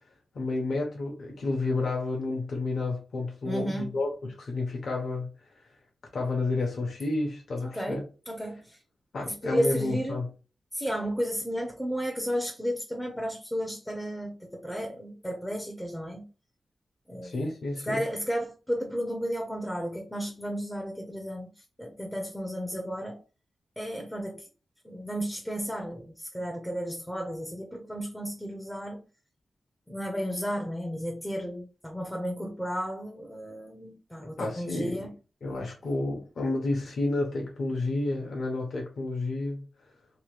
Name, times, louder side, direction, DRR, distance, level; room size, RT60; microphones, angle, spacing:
voice 1, 0.3-5.3 6.1-8.0 9.1-10.3 17.2-18.0 34.4-35.1 35.4-39.6, left 2 dB, 65° left, 0.7 m, -30 dB
voice 2, 3.4-3.9 7.7-8.8 9.2-10.2 10.7-16.2 17.1-17.4 17.9-21.5 21.8-23.2 23.8-24.5 24.8-29.0 29.9-35.1, equal, 5° left, 0.4 m, -33 dB
2.8 x 2.1 x 3.0 m
wide cardioid pair, 165°, 0 cm